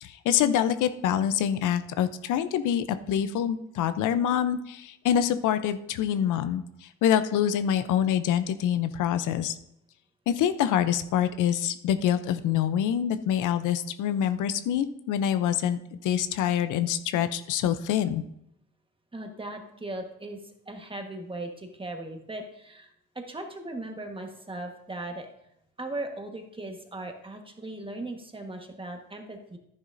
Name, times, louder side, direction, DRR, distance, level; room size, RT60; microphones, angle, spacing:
voice 1, 0.0-9.6 10.3-18.2, left 9 dB, 85° left, 11 dB, 0.6 m, -26 dB
voice 2, 19.1-22.9 23.1-25.3 25.8-29.6, right 2 dB, 15° right, 4 dB, 1.4 m, -38 dB
11.0 x 9.7 x 2.6 m, 0.78 s
cardioid pair, 90°, 30 cm